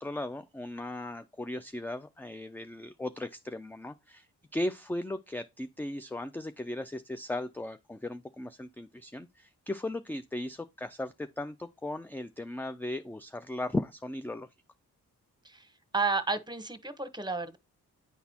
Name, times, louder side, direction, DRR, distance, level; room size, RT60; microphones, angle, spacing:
voice 1, 0.0-14.5, left 1 dB, 5° left, 0.3 m, -37 dB
voice 2, 15.9-17.6, right 4 dB, 10° right, 1.1 m, -31 dB
9.3 x 4.0 x 2.8 m
supercardioid pair, 45°, 38 cm